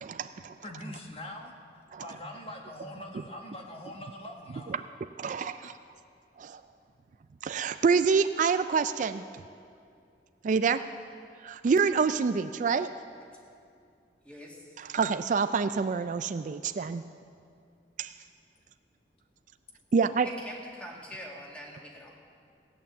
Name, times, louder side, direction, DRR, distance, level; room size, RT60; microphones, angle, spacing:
voice 1, 0.0-0.6 1.9-2.0 4.7-4.8 5.2-5.8 6.4-6.6 7.4-9.2 10.4-10.9 11.4-13.0 14.8-17.0 18.0-18.1 19.9-20.3, right 5 dB, 45° right, 11 dB, 0.3 m, -27 dB
voice 2, 0.6-1.5 2.0-4.7, left 1 dB, 35° left, 2 dB, 1.2 m, -42 dB
voice 3, 14.2-14.7 20.2-22.1, equal, 5° left, -2 dB, 2.0 m, -44 dB
16.5 x 9.2 x 7.3 m, 2.4 s
head